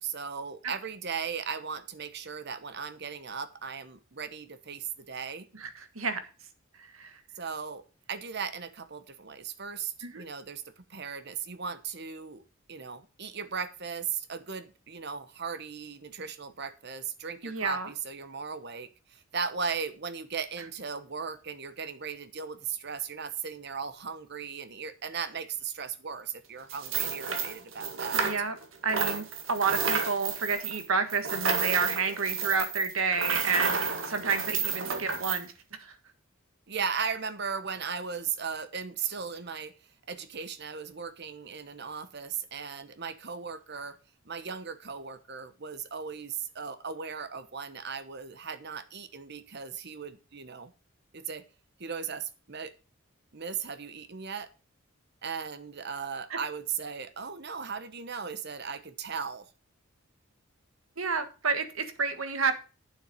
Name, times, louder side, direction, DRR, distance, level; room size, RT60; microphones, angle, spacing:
voice 1, 0.0-5.5 7.4-12.4 12.7-28.3 36.7-39.7 40.1-44.0 44.2-50.7 51.1-51.4 51.8-52.7 53.3-54.5 55.2-59.5, right 6 dB, 55° right, 12 dB, 1.1 m, -37 dB
voice 2, 17.4-17.9 28.2-28.6 28.8-35.5 35.8-35.9 56.3-56.4 61.0-62.6, right 4 dB, 85° right, 9 dB, 1.6 m, -30 dB
sound 1, 26.7-28.6 28.9-35.4, right 5 dB, 70° right, 1.8 m, -31 dB
9.1 x 7.4 x 5.2 m, 0.33 s
head